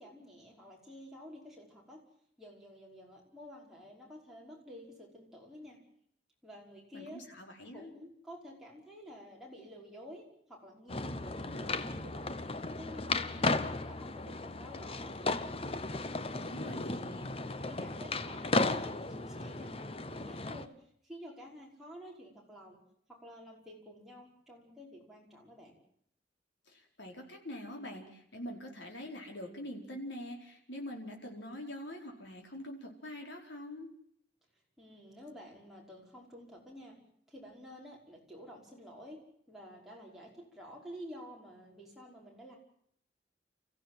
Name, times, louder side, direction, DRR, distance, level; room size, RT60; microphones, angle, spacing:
voice 1, 0.0-2.0 2.4-5.8 6.4-7.2 7.7-12.4 12.7-15.5 16.2-16.6 17.4-20.7 21.0-22.8 23.1-25.8 34.8-37.0 37.3-39.2 39.5-42.6, equal, ahead, -3 dB, 5.4 m, -51 dB
voice 2, 6.9-7.9 16.4-17.4 26.7-33.9, left 1 dB, 75° left, 1 dB, 4.8 m, -44 dB
sound 1, 10.9-20.7, left 3 dB, 30° left, 0.9 m, -35 dB
29.5 x 15.5 x 7.7 m, 0.67 s
head